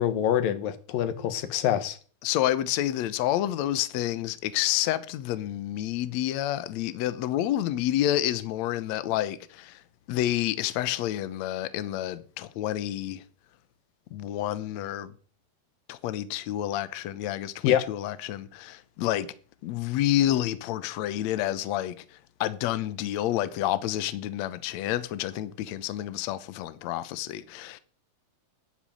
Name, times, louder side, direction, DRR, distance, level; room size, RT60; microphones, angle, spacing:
voice 1, 0.0-2.0 17.6-17.8, left 10 dB, 65° left, 2.7 m, -25 dB
voice 2, 2.2-9.8 10.1-13.2 14.1-15.1 15.9-19.3 19.6-21.9 22.4-27.8, left 13 dB, 85° left, 1.5 m, -29 dB
12.0 x 8.5 x 9.1 m
omnidirectional pair, 4.6 m